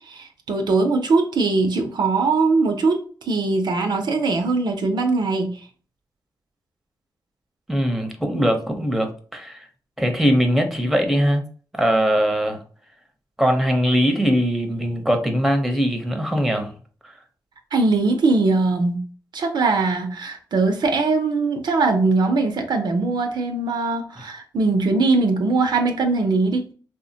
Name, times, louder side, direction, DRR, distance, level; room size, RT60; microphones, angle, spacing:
voice 1, 0.1-5.6 17.7-19.0 19.3-26.7, right 3 dB, 65° right, 0.5 m, -21 dB
voice 2, 7.7-9.6 10.0-11.4 11.7-12.6 13.4-16.7, equal, ahead, 0.7 m, -21 dB
3.2 x 2.1 x 2.7 m
cardioid pair, 65°, 8 cm